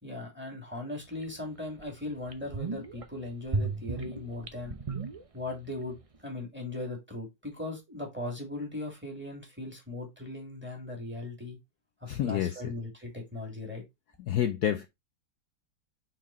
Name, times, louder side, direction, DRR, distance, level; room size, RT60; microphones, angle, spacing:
voice 1, 0.0-4.8 5.3-6.0 6.2-11.6 12.0-13.8, left 2 dB, 5° right, 2.6 m, -38 dB
sound 1, 1.2-1.3 1.8-1.9 2.2-3.0 3.5-5.7 6.0-6.1, right 3 dB, 45° right, 0.4 m, -34 dB
voice 2, 12.1-12.6 14.3-14.8, left 11 dB, 65° left, 1.1 m, -28 dB
6.0 x 4.6 x 4.2 m
omnidirectional pair, 2.0 m